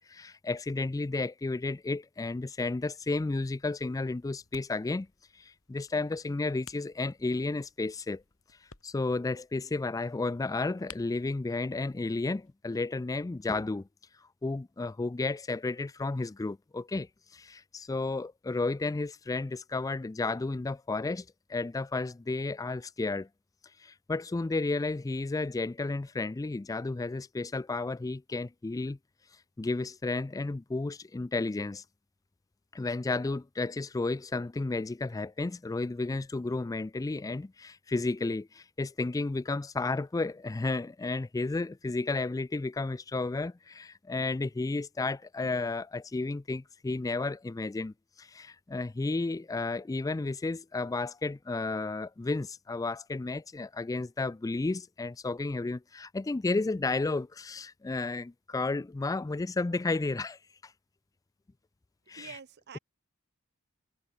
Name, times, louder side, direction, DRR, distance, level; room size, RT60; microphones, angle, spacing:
voice 1, 0.0-5.1 5.3-8.2 8.8-13.9 14.4-23.3 23.8-29.0 29.6-31.8 32.7-60.7 62.1-62.4, left 3 dB, 15° left, 0.3 m, -32 dB
sound 1, 3.8-12.5, left 7 dB, 70° left, 2.3 m, -57 dB
voice 2, 62.2-62.8, right 7 dB, 50° right, 0.7 m, -46 dB
head